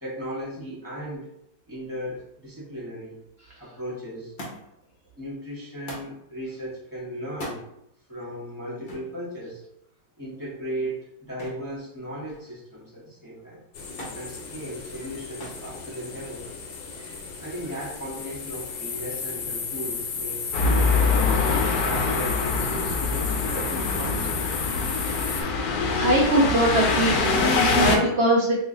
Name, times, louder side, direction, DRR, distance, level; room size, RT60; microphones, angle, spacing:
voice 1, 0.0-1.3 1.7-3.2 3.6-4.3 5.2-7.6 8.1-9.6 10.2-11.0 11.3-13.6 14.1-16.5 17.4-20.9 21.4-24.4, equal, 15° left, -8 dB, 0.8 m, -36 dB
Thump thud, 4.4-4.9 5.9-6.2 7.3-7.6 8.9-9.1 11.4-11.7 12.1-12.6 14.0-14.3 15.4-15.7 16.6-17.1 18.1-18.2, equal, 50° left, 0.7 m, -39 dB
sound 1, 13.7-25.4, left 5 dB, 90° left, 1.4 m, -34 dB
sound 2, 20.5-28.0, left 4 dB, 70° left, 1.0 m, -24 dB
voice 2, 25.9-28.6, right 1 dB, 70° right, -4 dB, 0.5 m, -22 dB
3.1 x 2.4 x 3.8 m, 0.78 s
omnidirectional pair, 1.9 m